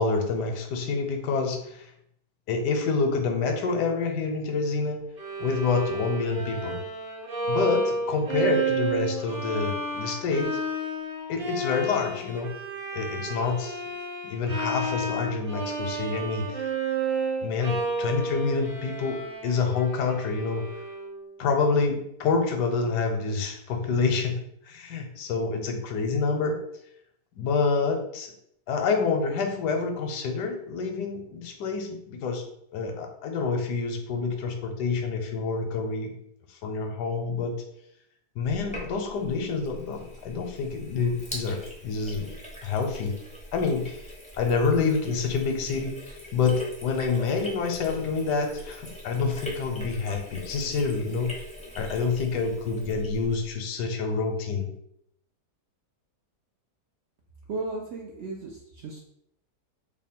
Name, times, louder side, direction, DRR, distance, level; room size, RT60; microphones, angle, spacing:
voice 1, 0.0-1.9 2.5-5.0 5.4-6.8 7.5-10.5 11.3-12.5 12.9-13.8 14.2-16.7 17.4-20.7 21.4-24.4 24.6-26.6 27.4-28.3 28.7-32.4 32.7-36.2 36.5-37.6 38.4-42.3 42.6-43.1 43.5-44.0 44.3-51.3 51.7-54.7, left 4 dB, 90° left, 4 dB, 1.3 m, -27 dB
Bowed string instrument, 5.2-21.2, right 3 dB, 35° right, 1.4 m, -31 dB
Sink (filling or washing), 38.4-53.5, left 1 dB, 10° left, 0.4 m, -42 dB
voice 2, 57.5-59.0, right 3 dB, 65° right, -2 dB, 0.7 m, -35 dB
3.1 x 2.2 x 4.3 m, 0.74 s
omnidirectional pair, 1.7 m